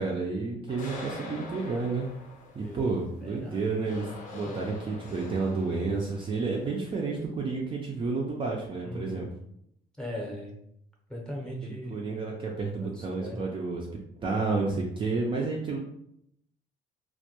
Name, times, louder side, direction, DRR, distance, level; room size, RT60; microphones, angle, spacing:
voice 1, 0.0-2.1 2.5-4.1 4.3-9.3 11.6-13.8 14.2-15.8, right 4 dB, 30° right, -1 dB, 0.4 m, -30 dB
sound 1, 0.7-7.2, left 3 dB, 50° left, 0.6 m, -45 dB
voice 2, 3.2-3.7 4.4-4.8 8.8-9.3 10.0-10.5 11.1-12.0 12.8-13.4, equal, 5° left, -1 dB, 0.6 m, -39 dB
2.2 x 2.1 x 2.8 m, 0.74 s
cardioid pair, 110°, 17 cm